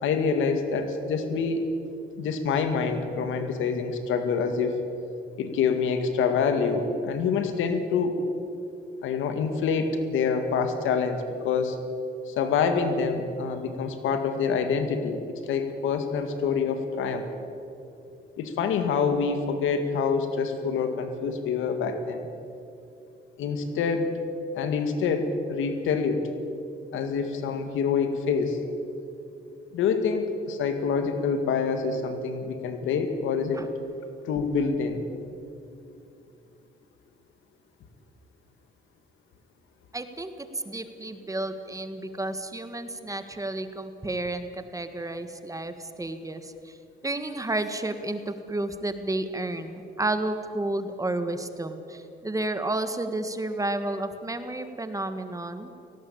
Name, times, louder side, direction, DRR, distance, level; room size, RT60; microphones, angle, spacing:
voice 1, 0.0-1.7 2.2-4.7 5.4-8.2 9.0-11.8 12.3-17.3 18.4-22.3 23.4-24.2 24.5-26.3 26.9-28.6 29.7-33.7 34.3-35.0, left 5 dB, 85° left, 7 dB, 2.1 m, -26 dB
voice 2, 39.9-46.8 47.0-55.7, right 2 dB, 15° right, 9 dB, 1.6 m, -31 dB
18.0 x 17.5 x 8.8 m, 2.7 s
cardioid pair, 90°, 20 cm